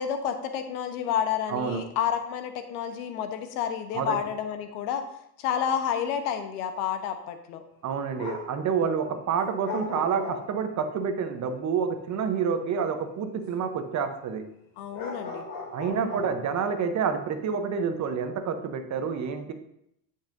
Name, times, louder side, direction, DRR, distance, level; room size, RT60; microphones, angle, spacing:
voice 1, 0.0-5.0 5.4-7.6 14.8-15.4 15.9-16.2, left 8 dB, 70° left, 7 dB, 1.1 m, -30 dB
voice 2, 1.5-1.8 3.9-4.2 7.8-14.4 15.7-19.5, right 6 dB, 35° right, 8 dB, 0.9 m, -28 dB
sound 1, 8.2-8.6 9.6-10.8 14.9-16.9, left 3 dB, 45° left, 2.8 m, -37 dB
10.0 x 5.6 x 2.6 m, 0.76 s
hypercardioid pair, 95°, 48 cm